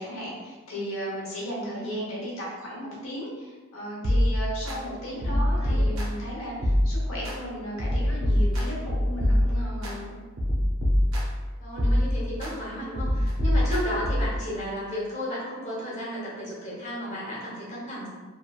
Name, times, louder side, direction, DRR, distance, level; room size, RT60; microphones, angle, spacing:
voice 1, 0.0-10.1, equal, 75° left, -5 dB, 0.9 m, -35 dB
voice 2, 1.7-2.0 5.0-5.8 11.6-18.1, equal, 35° left, -7 dB, 0.9 m, -34 dB
sound 1, 4.0-4.8 5.2-6.3 6.6-7.4 7.8-9.9 10.4-11.4 11.8-12.5 12.9-14.4, left 1 dB, 70° right, 0.5 m, -24 dB
3.1 x 2.3 x 2.3 m, 1.3 s
head